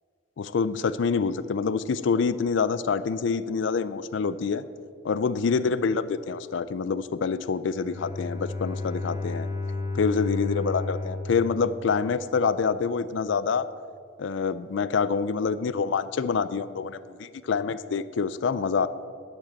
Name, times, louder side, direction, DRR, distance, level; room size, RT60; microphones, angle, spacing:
voice 1, 0.4-4.6 5.0-9.5 9.9-13.6 14.2-18.9, left 5 dB, 65° left, 15 dB, 0.4 m, -26 dB
Bowed string instrument, 7.8-12.6, left 3 dB, 15° right, 1.4 m, -33 dB
11.0 x 5.1 x 7.5 m, 2.2 s
head